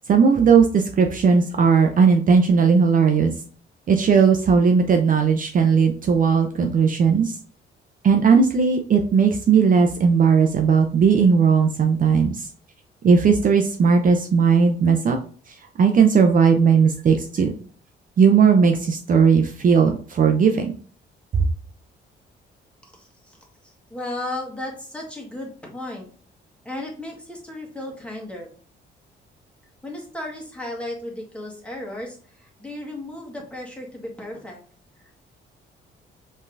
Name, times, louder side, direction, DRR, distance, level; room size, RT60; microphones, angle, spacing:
voice 1, 0.1-3.3 3.9-7.3 8.0-12.5 13.0-15.2 15.5-17.5 18.2-20.7 21.3-21.4, right 6 dB, 45° right, 4 dB, 0.5 m, -17 dB
voice 2, 22.9-23.4 23.6-26.1 26.6-28.5 29.8-34.6 35.0-35.1, left 1 dB, 5° left, -1 dB, 1.6 m, -35 dB
5.3 x 3.2 x 2.6 m, 0.43 s
cardioid pair, 90°, 20 cm